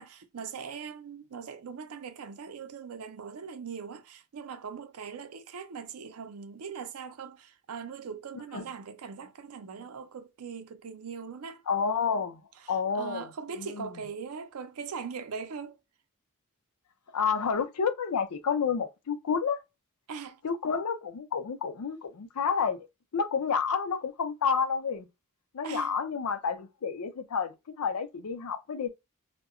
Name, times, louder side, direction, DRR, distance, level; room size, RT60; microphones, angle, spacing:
voice 1, 0.0-11.6 12.6-15.8 20.1-20.4 25.6-25.9, right 6 dB, 75° right, 0.5 m, -41 dB
voice 2, 11.7-12.4 12.7-13.3 13.6-14.0 17.1-19.6 20.4-22.9 23.1-25.1 25.5-28.9, left 6 dB, 80° left, 0.5 m, -30 dB
2.7 x 2.1 x 2.4 m
head